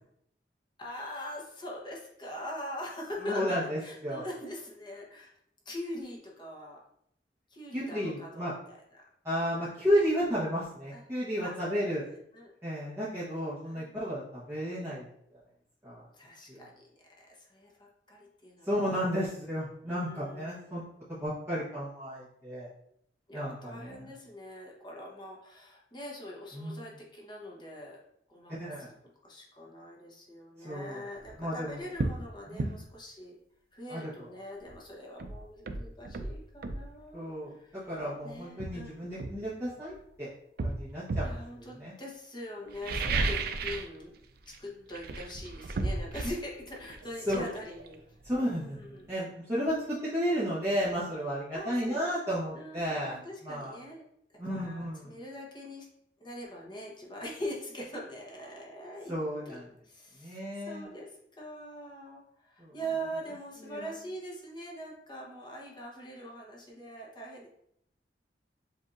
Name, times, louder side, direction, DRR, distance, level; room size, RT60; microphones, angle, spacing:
voice 1, 0.8-5.4 5.6-6.8 7.5-9.0 10.9-11.0 11.4-12.5 13.7-13.9 16.1-16.9 17.3-18.7 18.9-19.2 19.9-20.9 23.3-28.0 28.3-28.9 29.2-33.3 33.7-37.9 38.2-39.0 41.2-44.1 44.6-48.0 48.3-49.1 51.5-52.0 52.3-54.0 54.4-55.9 56.2-59.1 59.4-61.1 61.4-67.5, equal, 25° left, -3 dB, 1.0 m, -42 dB
voice 2, 3.2-4.2 7.7-8.5 9.2-12.0 12.6-15.1 15.8-16.0 16.5-16.6 18.6-20.8 21.2-22.7 23.3-24.0 26.5-26.9 28.6-28.8 30.6-31.0 31.4-31.7 32.5-32.7 33.9-34.0 37.1-37.5 37.9-40.3 40.6-41.9 47.3-47.4 48.2-53.2 53.4-53.7 54.4-55.1 59.1-59.6 60.2-60.9 62.6-62.7 63.6-63.9, equal, 15° right, -11 dB, 1.1 m, -33 dB
sound 1, 31.2-31.4 32.0-32.2 32.6-32.8 34.7-34.8 35.2-36.9 37.9-38.1 38.6-40.0 40.6-41.4 42.7-44.0 44.2-44.6 44.9-48.5 48.8-48.9, right 3 dB, 60° right, 0.4 m, -34 dB
7.6 x 2.7 x 2.5 m, 0.72 s
head